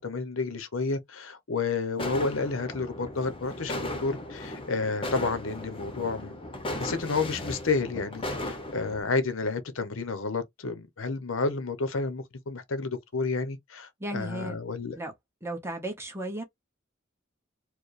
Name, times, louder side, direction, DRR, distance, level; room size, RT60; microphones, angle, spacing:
voice 1, 0.0-6.4 6.8-14.9, left 4 dB, 80° left, 0.8 m, -30 dB
sound 1, 2.0-9.0, left 1 dB, 25° left, 0.9 m, -36 dB
voice 2, 14.0-14.6 14.9-15.1 15.4-16.4, right 1 dB, 15° right, 1.1 m, -34 dB
4.5 x 2.2 x 3.2 m
head